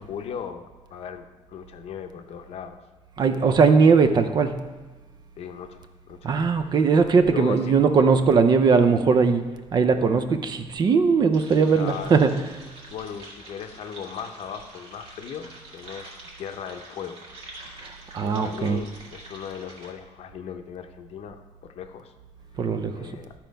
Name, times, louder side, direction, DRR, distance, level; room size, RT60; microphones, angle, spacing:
voice 1, 0.0-2.8 5.4-6.3 6.7-6.8 7.2-7.7 11.7-12.2 12.9-17.2 18.2-22.1 22.9-23.3, left 8 dB, 60° left, 7 dB, 0.7 m, -38 dB
voice 2, 3.2-4.6 6.2-9.4 9.7-12.3 17.8-18.8 22.6-23.1, right 5 dB, 35° right, 9 dB, 0.5 m, -19 dB
sound 1, 11.3-19.9, right 2 dB, 60° right, 1.9 m, -46 dB
12.5 x 4.4 x 5.2 m, 1.3 s
cardioid pair, 175°, 12 cm